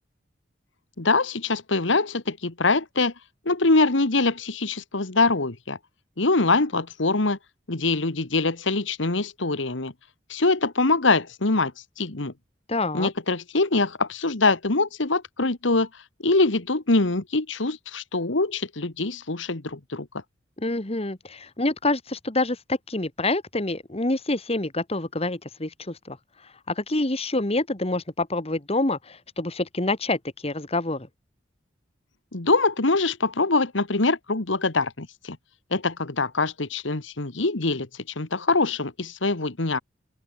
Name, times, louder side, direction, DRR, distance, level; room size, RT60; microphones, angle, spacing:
voice 1, 1.0-3.1 3.5-5.8 6.2-7.4 7.7-9.9 10.3-11.7 12.0-12.3 12.9-15.9 16.2-20.1 32.3-35.4 35.7-37.9 38.2-39.8, left 3 dB, 80° left, 1.7 m, -23 dB
voice 2, 12.7-13.1 20.6-26.2 26.7-31.1, left 2 dB, 35° left, 1.9 m, -27 dB
open air
head